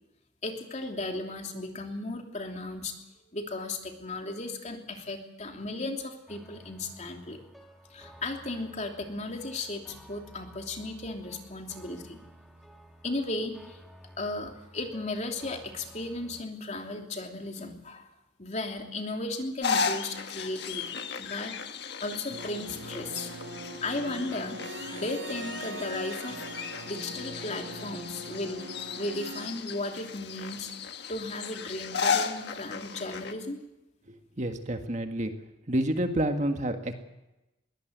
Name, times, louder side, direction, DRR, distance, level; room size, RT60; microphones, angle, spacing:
voice 1, 0.4-2.9 3.3-7.4 7.9-12.2 13.0-13.8 14.2-18.1 18.4-21.5 22.0-23.3 23.8-24.6 24.9-26.5 26.8-28.6 29.0-30.7 31.1-33.6, left 2 dB, 40° left, 3 dB, 3.0 m, -35 dB
sound 1, 6.3-16.4, right 1 dB, ahead, 2.2 m, -53 dB
sound 2, 19.6-33.3, left 6 dB, 60° left, 1.5 m, -35 dB
sound 3, 22.3-29.5, right 1 dB, 75° right, 5.4 m, -41 dB
voice 2, 34.1-35.3 35.7-36.9, right 1 dB, 40° right, 6 dB, 1.8 m, -29 dB
22.0 x 18.0 x 8.1 m, 0.97 s
head